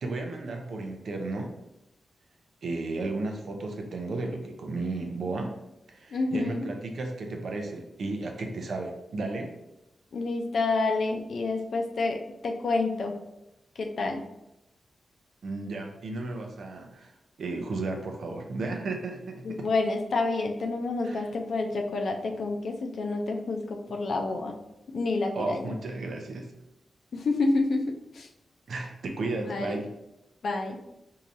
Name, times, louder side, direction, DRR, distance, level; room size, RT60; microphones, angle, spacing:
voice 1, 0.0-1.5 2.6-5.5 5.9-9.5 15.4-17.1 17.4-19.6 21.0-21.3 25.3-26.5 28.7-29.9, right 2 dB, 65° right, 3 dB, 0.6 m, -34 dB
voice 2, 6.1-6.7 10.1-13.1 13.8-14.2 19.4-24.5 24.9-25.7 27.1-27.8 28.1-28.3 29.5-29.8 30.4-30.8, left 3 dB, 65° left, 3 dB, 0.5 m, -28 dB
4.7 x 2.7 x 2.6 m, 0.90 s
wide cardioid pair, 120°, 0 cm